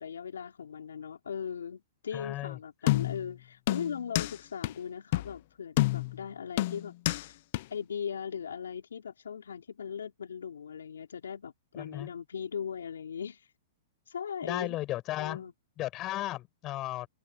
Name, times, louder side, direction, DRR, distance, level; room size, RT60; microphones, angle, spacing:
voice 1, 0.0-6.9 7.2-7.3 7.7-13.4 14.1-14.8 15.2-15.5, left 7 dB, 90° left, 4.5 m, -39 dB
voice 2, 2.1-2.6 11.8-12.1 14.4-15.4 15.8-17.1, left 16 dB, 35° left, 6.3 m, -35 dB
sound 1, 2.9-3.3 3.7-4.3 4.6-4.7 5.1-5.3 5.8-6.2 6.6-7.2 7.5-7.6, left 18 dB, 55° left, 0.9 m, -28 dB
hypercardioid pair, 130°, 0 cm